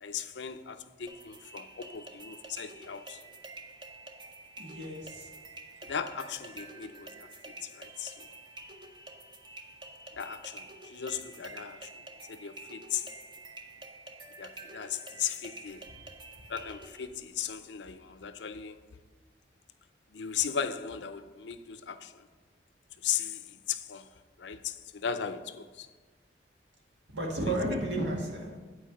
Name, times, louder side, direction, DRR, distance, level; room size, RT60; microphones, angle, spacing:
voice 1, 0.0-3.2 5.8-7.3 7.6-8.3 10.1-12.0 12.3-13.1 14.4-15.9 16.5-18.8 20.1-22.3 23.0-24.1 24.4-25.9 27.5-27.6, left 8 dB, 75° left, 0.5 m, -37 dB
sound 1, 1.1-17.1, right 2 dB, 25° right, 0.6 m, -48 dB
voice 2, 4.6-5.4 27.1-28.6, right 1 dB, 85° right, 1.8 m, -33 dB
8.4 x 4.7 x 7.2 m
head